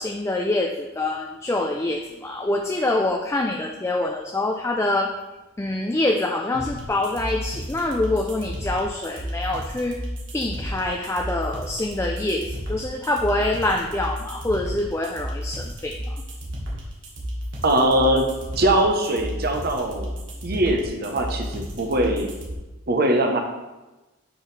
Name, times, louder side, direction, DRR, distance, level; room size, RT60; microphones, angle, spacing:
voice 1, 0.0-5.1 5.6-10.0 10.3-16.2, left 2 dB, 15° left, 2 dB, 0.4 m, -25 dB
sound 1, 6.5-22.5, equal, 65° right, 1.7 m, -32 dB
voice 2, 17.6-18.3 18.6-20.2 20.4-22.3 22.9-23.4, right 1 dB, 50° right, 3 dB, 0.9 m, -21 dB
8.4 x 4.8 x 3.3 m, 1.1 s
head